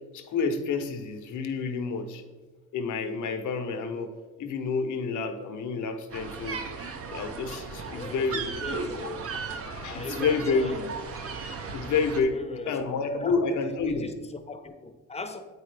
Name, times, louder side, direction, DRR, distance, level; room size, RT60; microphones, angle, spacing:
voice 1, 0.1-2.2 2.7-4.1 4.4-8.5 9.7-10.7 11.7-14.1, left 4 dB, 75° left, 6 dB, 0.8 m, -29 dB
sound 1, 6.1-12.2, right 4 dB, 50° right, 0.8 m, -36 dB
voice 2, 7.9-9.3 9.9-11.0 12.3-13.4 13.6-15.4, left 3 dB, 20° left, 7 dB, 0.7 m, -39 dB
8.3 x 4.7 x 3.3 m, 1.3 s
cardioid pair, 90°, 30 cm